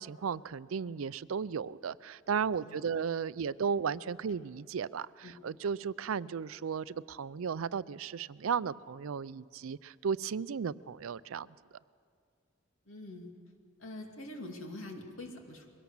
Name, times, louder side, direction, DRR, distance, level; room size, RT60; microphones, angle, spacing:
voice 1, 0.0-11.5, right 6 dB, 85° right, 18 dB, 0.4 m, -35 dB
voice 2, 2.5-3.0 5.2-5.3 12.9-13.3 13.8-15.7, left 1 dB, 80° left, 2 dB, 2.5 m, -45 dB
22.0 x 17.5 x 7.2 m, 2.2 s
head